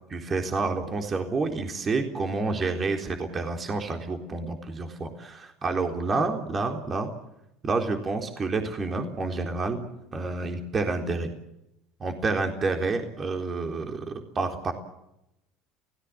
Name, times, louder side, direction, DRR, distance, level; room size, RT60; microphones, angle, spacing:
voice 1, 0.1-7.1 7.6-9.8 10.1-11.3 12.0-14.7, right 3 dB, 30° right, 4 dB, 3.9 m, -29 dB
28.5 x 18.5 x 7.6 m, 0.86 s
supercardioid pair, 90°, 0 cm